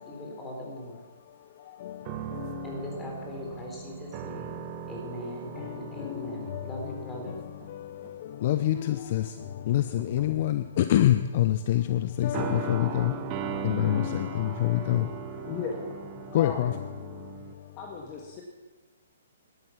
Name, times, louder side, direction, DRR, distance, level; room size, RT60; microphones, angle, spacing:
voice 1, 0.1-1.0 2.6-4.6 4.9-7.4, left 1 dB, 15° left, -1 dB, 3.8 m, -40 dB
sound 1, 2.0-8.1 8.5-8.8 9.7-10.5 12.3-17.5, right 9 dB, 30° right, 1.1 m, -39 dB
voice 2, 8.4-9.2 9.7-13.1 13.6-15.0 16.3-16.7, left 12 dB, 45° left, 10 dB, 0.6 m, -25 dB
voice 3, 15.4-16.0 16.4-16.7 17.8-18.4, left 5 dB, 30° left, 1 dB, 1.7 m, -37 dB
12.5 x 12.5 x 5.8 m, 1.2 s
hypercardioid pair, 135°, 0 cm